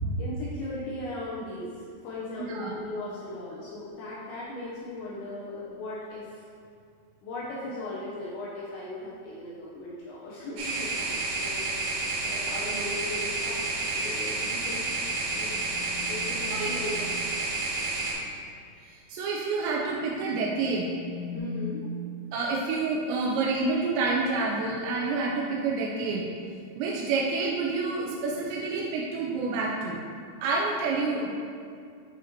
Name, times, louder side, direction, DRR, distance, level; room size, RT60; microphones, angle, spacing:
voice 1, 0.2-6.5 7.2-11.7 12.2-13.6 13.9-14.8 15.4-15.6 16.0-17.1 21.3-21.8, left 1 dB, 80° left, -7 dB, 2.9 m, -38 dB
voice 2, 2.4-2.8 16.5-17.0 18.8-20.9 22.3-26.3 26.8-30.0 30.4-31.3, right 3 dB, 90° right, -3 dB, 2.5 m, -28 dB
sound 1, 10.6-18.1, right 3 dB, 65° right, 2.5 m, -30 dB
sound 2, 14.7-16.8 19.8-21.4, left 7 dB, 60° left, 2.6 m, -44 dB
9.1 x 4.9 x 2.9 m, 2.3 s
omnidirectional pair, 5.6 m